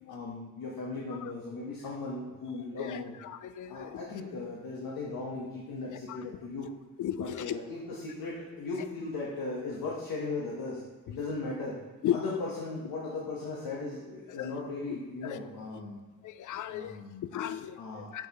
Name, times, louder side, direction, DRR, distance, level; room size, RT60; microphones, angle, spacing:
voice 1, 0.1-3.1 3.7-6.7 7.2-11.8 12.1-16.0 16.7-17.3 17.7-18.3, left 3 dB, 75° left, -4 dB, 1.2 m, -37 dB
voice 2, 2.8-4.1 5.9-6.2 7.0-7.6 12.0-12.2 14.4-14.5 15.2-15.4 16.2-17.0 17.3-18.3, left 11 dB, 60° left, 13 dB, 0.4 m, -35 dB
8.9 x 4.8 x 3.0 m, 1.3 s
cardioid pair, 105°, 36 cm